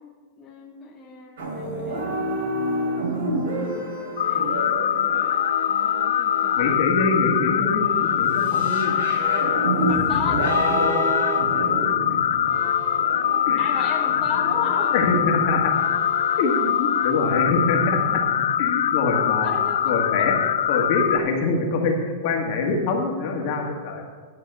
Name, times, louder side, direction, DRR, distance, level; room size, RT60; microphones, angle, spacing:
voice 1, 0.4-2.3 4.2-5.2 5.7-6.8 9.9-10.6 13.6-14.9 19.4-19.9, left 5 dB, 20° left, -2 dB, 1.0 m, -34 dB
sound 1, 1.4-17.3, right 1 dB, 80° right, 3.6 m, -30 dB
sound 2, 4.2-21.2, left 10 dB, 80° left, 0.4 m, -23 dB
voice 2, 6.6-8.9 10.1-10.4 10.7-11.0 13.5-13.8 14.9-15.7 16.4-18.2 18.6-19.5 19.9-20.3 20.7-24.0, left 3 dB, 50° left, 1 dB, 2.0 m, -24 dB
11.0 x 5.4 x 6.8 m, 1.6 s
supercardioid pair, 150°, 0 cm